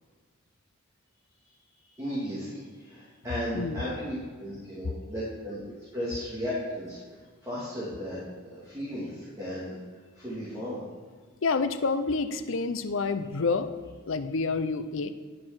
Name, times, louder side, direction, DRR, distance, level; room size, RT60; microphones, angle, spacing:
voice 1, 2.0-7.0 7.4-9.8 10.2-10.8, equal, 15° right, -9 dB, 2.2 m, -35 dB
voice 2, 11.4-13.7 14.1-15.1, left 4 dB, 65° left, 11 dB, 0.5 m, -28 dB
11.0 x 4.8 x 5.9 m, 1.5 s
head